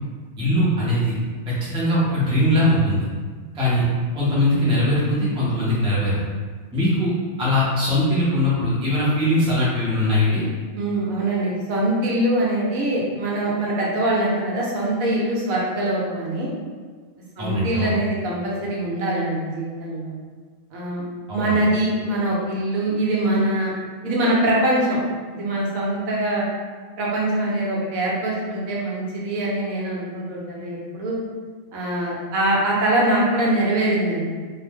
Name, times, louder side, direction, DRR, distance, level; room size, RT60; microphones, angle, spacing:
voice 1, 0.4-1.1 1.5-3.1 3.5-3.9 4.1-6.2 6.7-7.1 7.4-10.5 17.4-18.0 21.3-21.6, left 1 dB, 5° right, -8 dB, 0.4 m, -21 dB
voice 2, 10.7-16.5 17.4-20.1 20.7-21.0 21.3-23.7 24.0-25.0 25.3-26.4 27.0-31.1 31.7-34.2, right 1 dB, 80° right, -4 dB, 1.1 m, -23 dB
2.6 x 2.1 x 3.4 m, 1.5 s
omnidirectional pair, 1.4 m